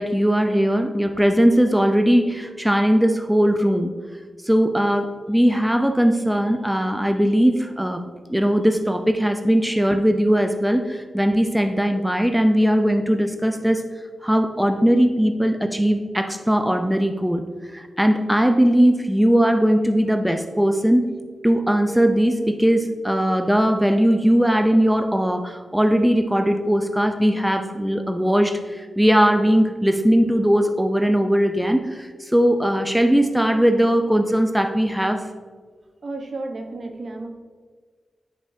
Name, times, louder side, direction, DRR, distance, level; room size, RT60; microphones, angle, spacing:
voice 1, 0.0-3.9 4.4-8.0 8.3-13.8 14.2-21.0 21.4-35.3, equal, 5° right, 7 dB, 0.6 m, -19 dB
voice 2, 36.0-37.3, right 2 dB, 60° right, 4 dB, 1.0 m, -32 dB
9.8 x 5.3 x 2.7 m, 1.5 s
cardioid pair, 55°, 0 cm